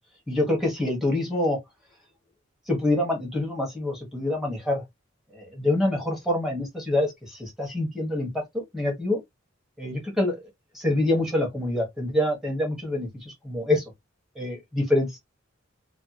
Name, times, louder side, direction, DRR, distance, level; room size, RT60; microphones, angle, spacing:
voice 1, 0.3-1.6 2.7-4.8 5.3-9.2 9.8-10.4 10.7-13.8 14.3-15.1, left 1 dB, ahead, 1.5 m, -26 dB
3.3 x 2.4 x 3.0 m
head